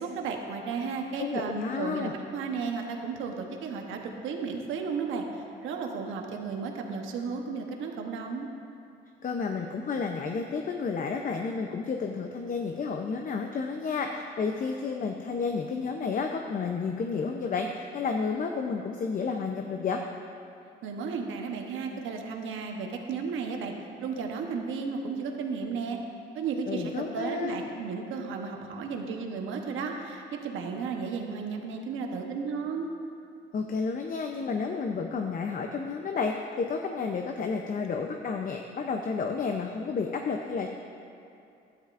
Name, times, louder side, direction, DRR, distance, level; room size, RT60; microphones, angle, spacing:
voice 1, 0.0-8.5 20.8-23.7 24.0-26.0 26.3-32.9, right 5 dB, 85° right, 2 dB, 1.0 m, -34 dB
voice 2, 1.2-2.1 9.2-20.0 26.7-27.6 33.5-40.7, left 5 dB, 45° left, 3 dB, 0.6 m, -31 dB
12.5 x 10.0 x 2.5 m, 2.6 s
cardioid pair, 90°, 20 cm